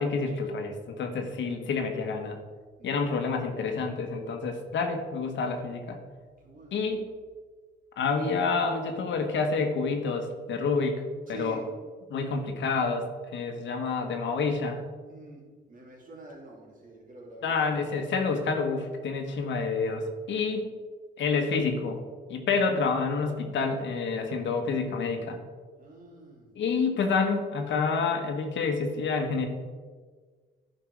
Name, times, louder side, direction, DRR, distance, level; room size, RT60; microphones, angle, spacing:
voice 1, 0.0-2.4 2.8-6.0 6.7-7.1 8.0-11.0 11.3-11.6 12.1-14.8 17.4-20.7 21.2-22.0 22.3-25.4 26.6-29.5, left 4 dB, 70° left, 5 dB, 1.3 m, -28 dB
voice 2, 2.8-3.1 6.4-6.8 11.3-11.7 15.1-17.9 25.8-26.5, right 2 dB, 40° right, -2 dB, 2.9 m, -47 dB
10.5 x 5.6 x 4.7 m, 1.5 s
cardioid pair, 90°, 20 cm